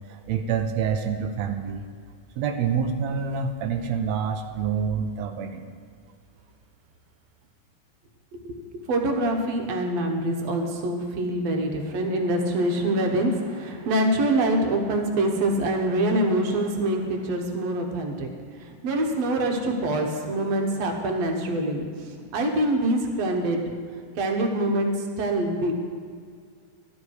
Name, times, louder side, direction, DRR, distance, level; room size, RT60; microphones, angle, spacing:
voice 1, 0.1-1.8 2.4-5.6, right 6 dB, 85° right, 4 dB, 1.5 m, -27 dB
voice 2, 8.9-18.3 18.6-23.6 24.2-25.7, right 1 dB, 60° right, 3 dB, 2.1 m, -25 dB
13.0 x 12.0 x 4.8 m, 2.1 s
omnidirectional pair, 3.9 m